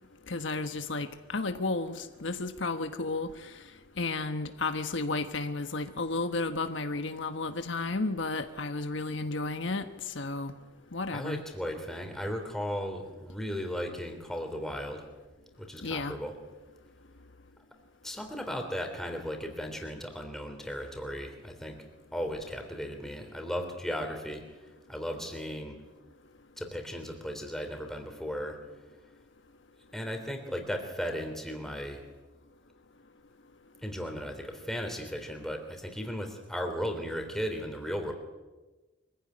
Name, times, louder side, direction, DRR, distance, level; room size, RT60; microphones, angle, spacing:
voice 1, 0.3-3.5 4.0-10.5 10.9-11.4 15.8-16.1, left 3 dB, 70° left, 7 dB, 1.3 m, -33 dB
voice 2, 11.1-15.0 15.6-16.3 18.0-21.8 22.1-24.4 24.9-25.8 26.6-28.6 29.9-32.0 33.8-38.1, equal, ahead, 4 dB, 3.3 m, -36 dB
24.5 x 15.5 x 9.8 m, 1.2 s
head